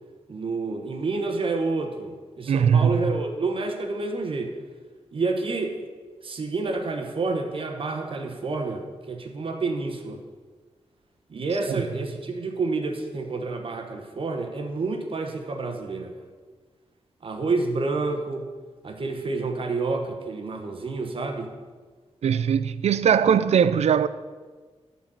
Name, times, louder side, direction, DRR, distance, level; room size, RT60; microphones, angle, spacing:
voice 1, 0.3-4.5 5.1-5.9 6.2-10.2 11.3-16.1 17.2-18.5 18.8-21.5, right 3 dB, 55° right, 1.0 m, -29 dB
voice 2, 2.5-2.9 22.2-24.1, right 8 dB, 80° right, 0.4 m, -20 dB
10.0 x 4.1 x 7.5 m
wide cardioid pair, 110°, 11 cm